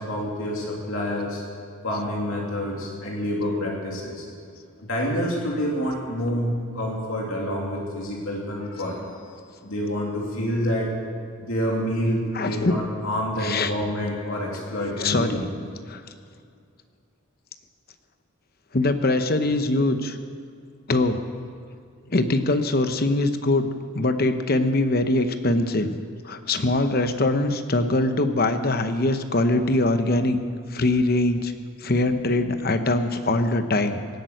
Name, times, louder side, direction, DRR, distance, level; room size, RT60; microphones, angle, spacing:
voice 1, 0.0-1.4 1.8-4.3 4.9-9.3 9.6-10.9 11.4-15.4, equal, 70° left, -2 dB, 2.7 m, -27 dB
voice 2, 12.3-12.8 13.4-13.7 14.8-15.4 15.9-16.0 18.7-20.2 20.9-21.2 22.1-23.7 23.9-25.9 26.2-30.4 30.7-31.5 31.8-34.1, left 2 dB, 45° left, 9 dB, 0.9 m, -22 dB
18.0 x 8.8 x 7.9 m, 2.3 s
head